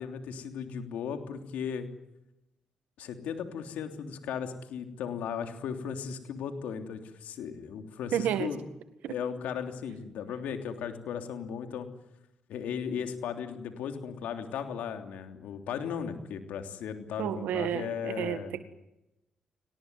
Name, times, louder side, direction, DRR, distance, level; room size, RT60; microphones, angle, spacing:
voice 1, 0.0-1.9 3.0-8.6 9.1-11.9 12.5-18.5, left 7 dB, 80° left, 6 dB, 3.2 m, -36 dB
voice 2, 8.1-8.5 9.0-9.1 17.2-18.6, right 10 dB, 85° right, 11 dB, 1.8 m, -31 dB
24.5 x 19.0 x 9.6 m, 0.89 s
supercardioid pair, 65°, 3 cm